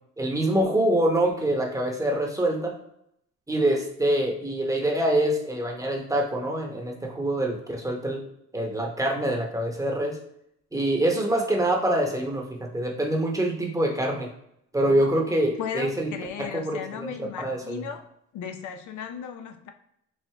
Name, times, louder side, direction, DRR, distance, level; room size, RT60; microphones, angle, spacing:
voice 1, 0.2-2.7 3.5-8.2 8.5-10.2 10.7-14.3 14.7-16.1 16.4-17.1 17.4-17.8, right 1 dB, 10° right, 1 dB, 0.9 m, -25 dB
voice 2, 14.8-15.2 15.6-18.0 18.3-19.7, left 7 dB, 75° left, 7 dB, 0.5 m, -36 dB
4.7 x 2.5 x 3.3 m, 0.76 s
cardioid pair, 90°, 30 cm